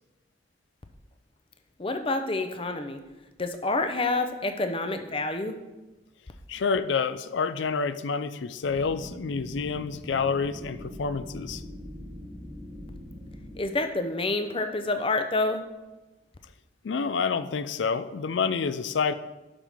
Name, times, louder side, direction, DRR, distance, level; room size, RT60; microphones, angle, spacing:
voice 1, 1.8-3.0 3.4-5.6 13.5-15.6, left 2 dB, 30° left, 7 dB, 0.6 m, -28 dB
voice 2, 6.5-11.6 16.8-19.1, left 5 dB, 85° left, 12 dB, 0.4 m, -28 dB
sound 1, 8.6-13.6, equal, 10° left, 1.2 m, -42 dB
11.0 x 5.6 x 3.5 m, 1.1 s
head